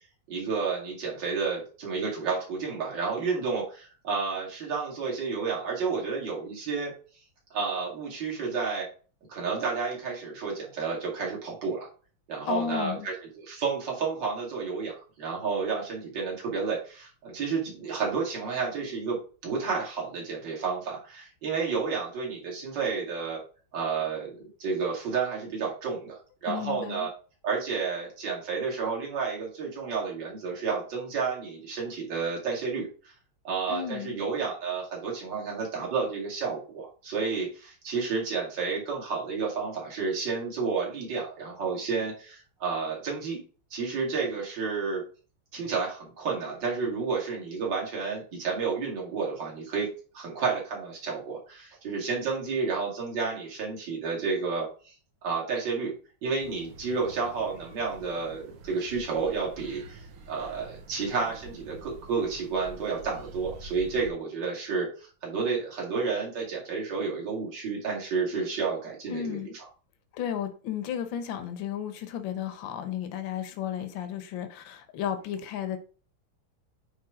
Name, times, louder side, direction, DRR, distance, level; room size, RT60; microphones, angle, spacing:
voice 1, 0.3-6.9 7.5-8.9 9.3-11.9 12.3-13.1 13.4-19.2 19.4-23.4 23.7-27.1 27.4-33.1 33.4-43.4 43.7-45.0 45.5-49.9 50.1-54.9 55.2-55.9 56.2-69.4, right 5 dB, 60° right, 3.0 m, -31 dB
voice 2, 12.5-13.1 26.5-27.1 33.7-34.2 69.1-69.5 70.1-75.8, left 9 dB, 70° left, 1.6 m, -33 dB
sound 1, 56.4-64.1, right 2 dB, 90° right, 2.0 m, -47 dB
8.8 x 3.3 x 4.9 m
omnidirectional pair, 2.3 m